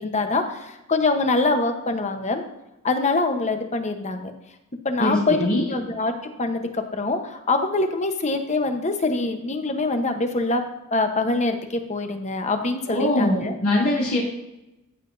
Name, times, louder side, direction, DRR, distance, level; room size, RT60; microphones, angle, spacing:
voice 1, 0.0-2.4 2.8-4.3 4.8-5.4 5.7-10.6 10.9-13.5, left 3 dB, 30° left, 6 dB, 1.0 m, -24 dB
voice 2, 5.0-5.7 12.9-14.2, left 1 dB, 70° left, -6 dB, 2.7 m, -22 dB
15.0 x 7.5 x 2.7 m, 0.93 s
head